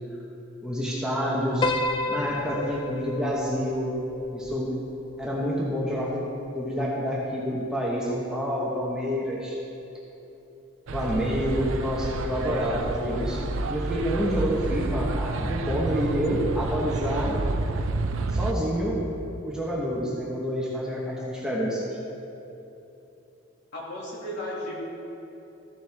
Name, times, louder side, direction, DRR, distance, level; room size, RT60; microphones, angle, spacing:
voice 1, 0.6-1.7 2.1-3.9 4.3-4.7 5.2-6.3 6.5-9.6 10.9-17.4 18.3-19.0 19.4-21.9, equal, 5° right, -6 dB, 1.2 m, -28 dB
Piano, 1.6-6.0, left 2 dB, 25° left, 0.3 m, -32 dB
sound 1, 10.9-18.5, right 2 dB, 75° right, 0.5 m, -29 dB
voice 2, 23.7-24.7, left 1 dB, 55° left, -5 dB, 2.3 m, -34 dB
14.5 x 7.3 x 3.6 m, 2.9 s
head